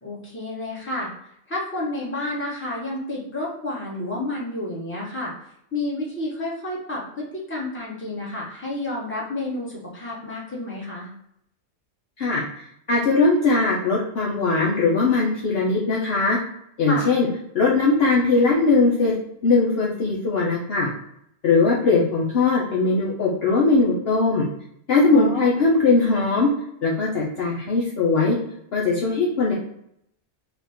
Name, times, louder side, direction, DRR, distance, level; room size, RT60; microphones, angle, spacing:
voice 1, 0.0-1.1 1.5-5.3 5.7-11.1 16.9-17.1 25.1-25.5, left 2 dB, 10° left, -6 dB, 1.2 m, -30 dB
voice 2, 12.9-16.4 16.8-17.3 17.5-19.1 19.4-20.9 21.4-24.5 24.9-26.5 26.8-28.4 28.7-29.5, left 3 dB, 55° left, -4 dB, 0.9 m, -20 dB
3.5 x 2.4 x 4.1 m, 0.73 s
omnidirectional pair, 1.3 m